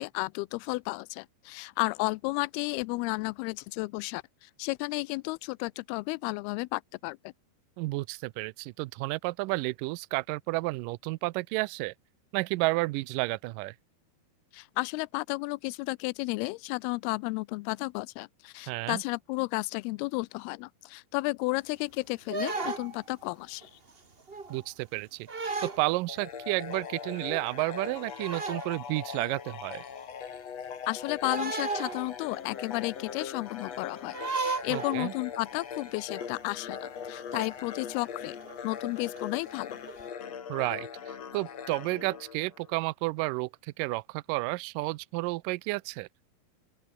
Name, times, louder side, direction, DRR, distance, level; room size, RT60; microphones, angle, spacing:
voice 1, 0.0-7.3 14.5-23.7 30.9-38.4 38.6-39.8, left 24 dB, 85° left, 2.4 m, -33 dB
voice 2, 7.8-11.9 12.3-13.7 18.7-19.0 24.5-25.3 25.6-29.8 34.7-35.1 40.5-43.5 43.8-46.1, right 22 dB, 85° right, 1.9 m, -31 dB
sound 1, 22.3-23.1 23.6-23.9 24.3-24.6 25.3-25.9 26.5-26.6 26.8-26.9 27.2-27.6 28.2-28.8 29.5-29.6 31.2-32.3 32.6-32.7 34.1-35.2 35.8-35.9 36.1-36.4 37.3-37.5 38.4-38.6 39.1-39.3 39.9-40.1, right 4 dB, 45° right, 0.7 m, -35 dB
sound 2, 26.1-42.8, left 7 dB, 45° left, 3.1 m, -41 dB
open air
omnidirectional pair, 4.5 m